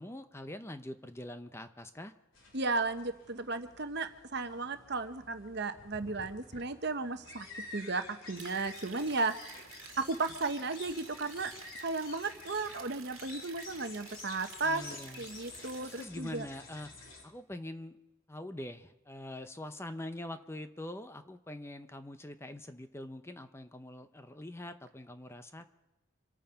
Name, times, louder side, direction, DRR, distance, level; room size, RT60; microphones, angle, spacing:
voice 1, 0.0-2.1 14.6-15.3 15.8-16.9 17.2-18.0 18.3-25.8, left 1 dB, 10° left, 9 dB, 0.7 m, -44 dB
sound 1, 2.3-17.2, left 2 dB, 70° left, 3.8 m, -50 dB
voice 2, 2.5-7.5 7.7-9.3 10.0-11.5 11.8-14.8 15.2-16.4, right 3 dB, 55° right, 9 dB, 1.1 m, -34 dB
sound 2, 8.4-16.0, right 8 dB, 85° right, 1.7 m, -52 dB
26.5 x 9.1 x 5.7 m, 1.0 s
head